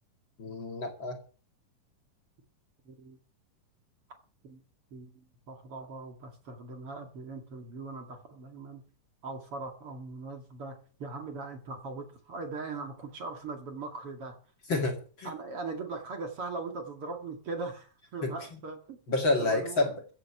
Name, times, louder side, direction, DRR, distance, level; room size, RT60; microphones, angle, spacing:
voice 1, 0.4-1.2 14.7-15.3 18.2-18.3 19.1-19.9, left 2 dB, 40° left, 3 dB, 2.6 m, -28 dB
voice 2, 2.9-3.2 4.4-4.6 4.9-8.8 9.2-14.4 15.2-19.0 19.4-19.9, right 3 dB, 45° right, 4 dB, 3.0 m, -40 dB
15.5 x 8.0 x 7.1 m, 0.39 s
omnidirectional pair, 3.7 m